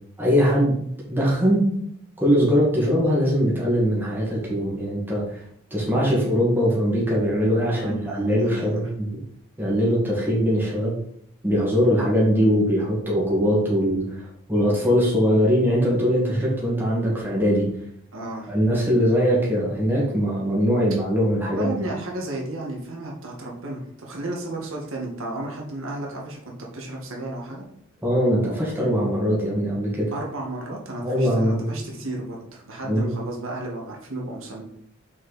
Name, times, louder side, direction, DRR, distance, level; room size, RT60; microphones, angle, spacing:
voice 1, 0.2-0.8 1.1-1.7 2.2-5.4 5.7-9.2 9.6-11.0 11.4-14.2 14.5-17.7 18.5-21.7 28.0-30.1 31.0-31.8 32.9-33.1, equal, 10° right, -5 dB, 1.9 m, -21 dB
voice 2, 7.7-8.8 18.1-18.5 21.5-27.6 30.1-34.6, right 1 dB, 70° right, -2 dB, 1.5 m, -33 dB
5.9 x 4.6 x 4.0 m, 0.69 s
head